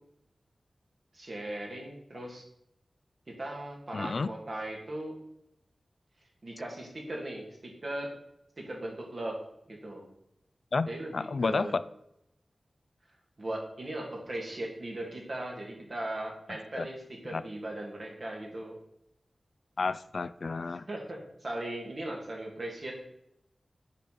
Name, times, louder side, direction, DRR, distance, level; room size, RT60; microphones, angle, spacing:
voice 1, 1.1-2.4 3.3-5.1 6.4-8.1 8.6-9.3 9.7-10.1 10.9-11.8 13.4-18.8 20.9-22.9, right 1 dB, 55° right, -1 dB, 2.8 m, -38 dB
voice 2, 3.9-4.3 10.7-11.8 16.8-16.9 17.3-17.4 19.8-20.9, left 4 dB, 65° left, 15 dB, 0.4 m, -31 dB
8.4 x 5.2 x 6.1 m, 0.80 s
wide cardioid pair, 90°, 0 cm